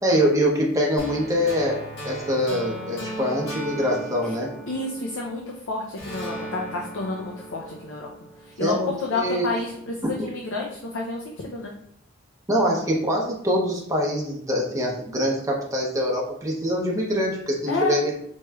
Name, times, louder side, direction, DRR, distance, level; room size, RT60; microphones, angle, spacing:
voice 1, 0.0-4.5 8.6-9.5 12.5-18.1, equal, 15° right, -3 dB, 0.7 m, -24 dB
sound 1, 1.0-5.5 6.0-9.1, right 1 dB, 90° left, 1.4 m, -37 dB
voice 2, 4.7-8.1 8.4-11.7 17.7-18.0, left 3 dB, 70° left, -1 dB, 0.5 m, -30 dB
4.4 x 3.0 x 2.3 m, 0.72 s
head